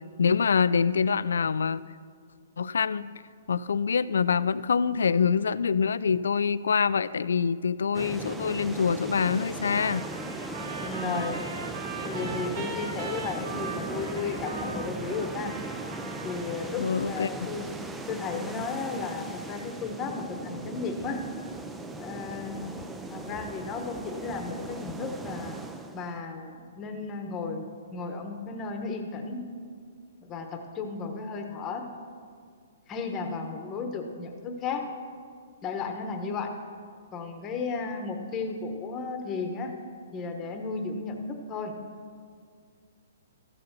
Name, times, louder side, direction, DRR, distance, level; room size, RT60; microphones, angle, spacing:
voice 1, 0.2-1.8 2.6-3.1 3.5-10.0 16.8-17.3, left 6 dB, 90° left, 17 dB, 0.4 m, -25 dB
sound 1, 7.9-26.2, right 2 dB, 5° right, 0.5 m, -38 dB
Trumpet, 9.7-16.7, right 3 dB, 60° right, 2.2 m, -39 dB
voice 2, 10.8-11.4 12.0-15.5 16.2-17.7 18.1-21.2 22.0-25.6 25.9-29.4 30.2-31.9 32.9-34.9 35.6-36.5 37.1-39.7 40.1-41.7, left 4 dB, 20° left, 4 dB, 1.1 m, -34 dB
14.0 x 6.9 x 6.6 m, 2.1 s
hypercardioid pair, 160°, 0 cm